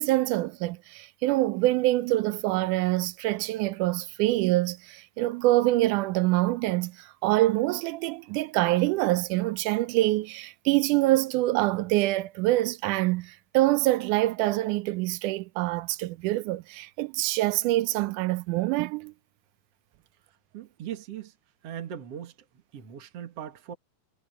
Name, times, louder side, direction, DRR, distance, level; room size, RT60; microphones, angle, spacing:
voice 1, 0.0-19.1, right 17 dB, 90° right, 2.2 m, -25 dB
voice 2, 20.5-21.3 21.6-22.3 22.7-23.8, right 9 dB, 55° right, 2.9 m, -39 dB
omnidirectional pair, 3.5 m